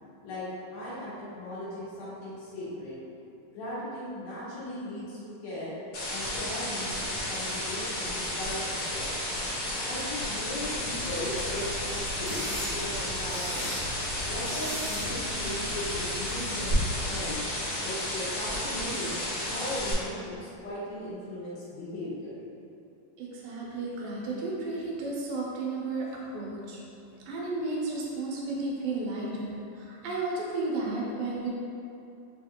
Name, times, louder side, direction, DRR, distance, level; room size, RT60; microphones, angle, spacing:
voice 1, 0.7-3.0 3.5-5.8 6.1-8.6 8.9-9.1 9.8-13.7 14.2-17.4 17.8-19.2 19.4-22.3, left 1 dB, 85° left, -9 dB, 3.0 m, -38 dB
sound 1, 5.9-19.9, left 1 dB, 60° left, 2.0 m, -33 dB
sound 2, 10.9-16.7, equal, 45° left, 1.1 m, -39 dB
voice 2, 23.2-26.8 27.3-31.5, right 3 dB, 80° right, -4 dB, 2.3 m, -33 dB
6.2 x 2.4 x 2.8 m, 2.7 s
omnidirectional pair, 4.1 m